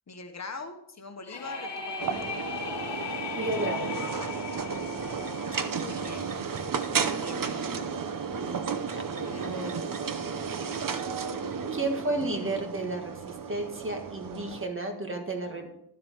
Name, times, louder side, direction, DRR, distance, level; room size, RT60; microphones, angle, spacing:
voice 1, 0.1-2.4 5.5-6.3 7.1-7.8 9.2-9.9, left 4 dB, 40° left, 6 dB, 1.2 m, -43 dB
sound 1, 1.3-6.9, left 5 dB, 70° left, 1.2 m, -38 dB
sound 2, 2.0-14.6, right 6 dB, 50° right, 0.8 m, -33 dB
voice 2, 3.3-4.0 7.4-7.8 8.3-9.0 9.4-9.7 10.4-10.9 11.7-15.7, right 2 dB, 30° right, 3 dB, 1.6 m, -33 dB
12.0 x 7.6 x 4.5 m, 0.74 s
wide cardioid pair, 160°, 44 cm